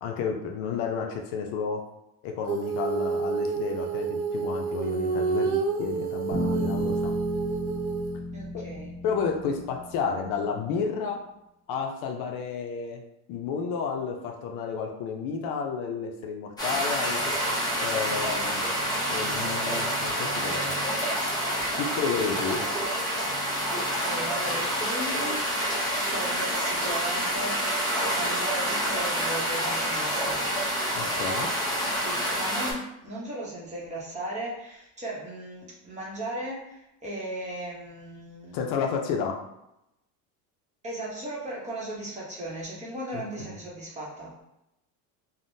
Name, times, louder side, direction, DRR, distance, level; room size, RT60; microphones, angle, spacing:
voice 1, 0.0-1.8 2.2-7.1 9.0-11.2 11.7-13.0 13.3-17.3 17.8-18.6 19.1-20.7 21.8-22.6 30.9-31.5 38.5-39.4 43.1-43.6, left 5 dB, 65° left, 2 dB, 0.5 m, -31 dB
Female singing, 2.5-8.2, right 5 dB, 90° right, 0.6 m, -29 dB
sound 1, 6.3-10.3, equal, 70° right, 1.0 m, -33 dB
voice 2, 8.3-8.9 23.7-25.5 26.0-27.6 28.1-30.5 31.0-31.2 32.0-38.6 40.8-44.4, right 1 dB, 20° right, -5 dB, 0.8 m, -37 dB
sound 2, 16.6-32.7, equal, 10° left, 0.6 m, -28 dB
3.4 x 2.1 x 2.6 m, 0.85 s
cardioid pair, 150°, 36 cm